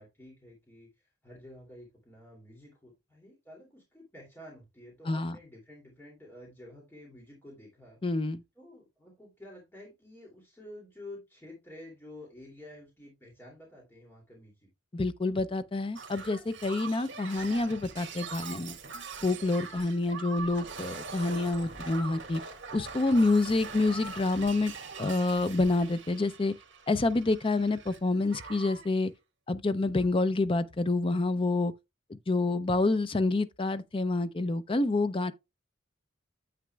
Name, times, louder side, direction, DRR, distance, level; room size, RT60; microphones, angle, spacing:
voice 1, 0.0-8.0 8.6-14.7 23.6-23.7, left 1 dB, 10° left, 2.6 m, -50 dB
voice 2, 5.1-5.4 8.0-8.4 14.9-18.8 19.2-22.4 22.7-24.7 25.0-26.5 26.9-29.1 29.5-31.7 32.1-35.3, left 2 dB, 30° left, 0.5 m, -28 dB
Shatter, 16.0-28.0 28.3-28.9 29.9-30.1, right 4 dB, 65° right, 2.0 m, -43 dB
9.2 x 7.9 x 2.3 m
head